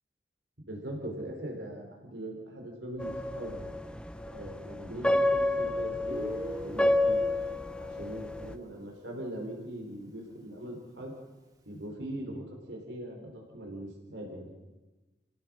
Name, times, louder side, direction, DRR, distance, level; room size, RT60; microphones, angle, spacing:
voice 1, 0.6-3.7 4.3-7.2 7.8-11.1 11.6-14.6, right 1 dB, 80° right, 0 dB, 4.5 m, -41 dB
sound 1, 3.0-8.5, left 1 dB, 5° left, 0.7 m, -29 dB
Guitar, 6.1-9.6, equal, 20° right, 2.3 m, -43 dB
29.0 x 16.5 x 6.5 m, 1.1 s
head